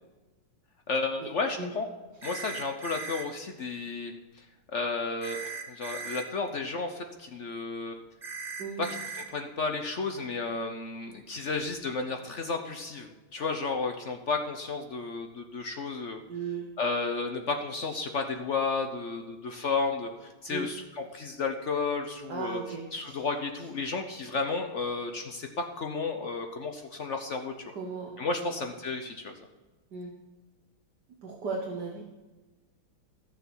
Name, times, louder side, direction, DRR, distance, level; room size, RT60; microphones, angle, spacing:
voice 1, 0.9-1.9 2.2-4.5 4.7-8.0 8.8-9.0 9.3-16.2 16.8-20.8 21.1-22.6 22.9-27.7 28.2-29.3, left 4 dB, 65° left, 5 dB, 0.7 m, -32 dB
sound 1, 2.2-3.2 5.2-6.2 8.2-9.2, right 5 dB, 30° right, 1.2 m, -38 dB
voice 2, 16.3-16.7 20.5-20.7 22.3-23.2 27.7-28.5 29.9-30.1 31.2-32.0, right 4 dB, 55° right, 0 dB, 1.7 m, -36 dB
14.5 x 6.8 x 6.2 m, 1.2 s
omnidirectional pair, 2.4 m